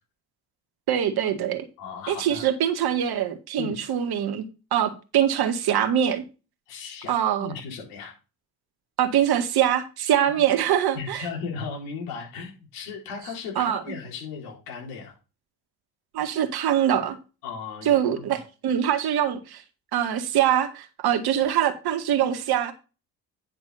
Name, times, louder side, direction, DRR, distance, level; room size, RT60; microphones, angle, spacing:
voice 1, 0.9-1.7 2.1-4.4 4.7-6.2 7.1-7.5 9.0-11.3 13.6-13.8 16.1-17.2 17.9-19.6 19.9-22.7, right 10 dB, 60° right, 1.9 m, -23 dB
voice 2, 1.8-2.4 3.6-3.8 6.7-8.1 10.3-10.4 10.9-15.1 17.4-18.4, left 5 dB, 80° left, 4.0 m, -36 dB
10.5 x 6.0 x 4.1 m
hypercardioid pair, 60°, 43 cm